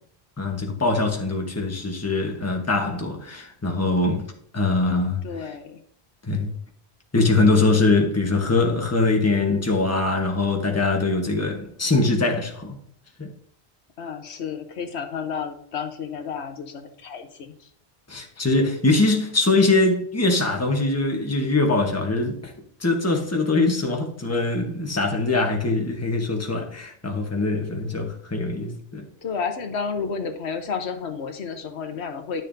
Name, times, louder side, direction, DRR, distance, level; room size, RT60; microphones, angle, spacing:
voice 1, 0.4-4.3 4.5-5.5 6.3-6.5 7.1-12.8 13.2-13.3 18.1-22.5 22.8-29.0, left 2 dB, 15° left, 1.1 m, -22 dB
voice 2, 5.2-5.8 14.0-17.7 29.2-32.4, left 6 dB, 85° left, 1.2 m, -31 dB
10.5 x 6.5 x 2.7 m
omnidirectional pair, 1.1 m